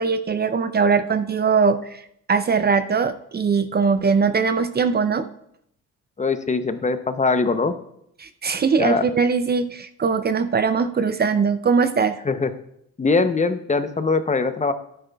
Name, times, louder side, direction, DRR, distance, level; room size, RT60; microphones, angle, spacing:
voice 1, 0.0-2.0 2.3-5.3 8.2-12.2, right 5 dB, 35° right, 11 dB, 0.5 m, -21 dB
voice 2, 6.2-7.7 8.8-9.0 12.2-12.5 13.0-14.7, left 4 dB, 25° left, 10 dB, 0.7 m, -21 dB
12.0 x 10.0 x 2.3 m, 0.73 s
cardioid pair, 90°, 30 cm